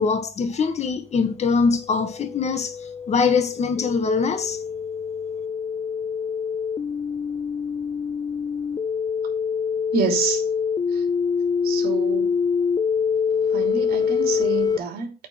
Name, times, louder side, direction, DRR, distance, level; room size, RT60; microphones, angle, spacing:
voice 1, 0.0-2.7 3.1-4.6, left 5 dB, 40° left, 1.7 m, -22 dB
sound 1, 1.6-14.8, left 6 dB, 25° left, 0.5 m, -25 dB
voice 2, 9.9-10.4 10.9-11.0 11.6-12.3 13.5-15.1, right 5 dB, 65° right, 3.1 m, -27 dB
8.8 x 4.4 x 5.7 m
cardioid pair, 110°, 17 cm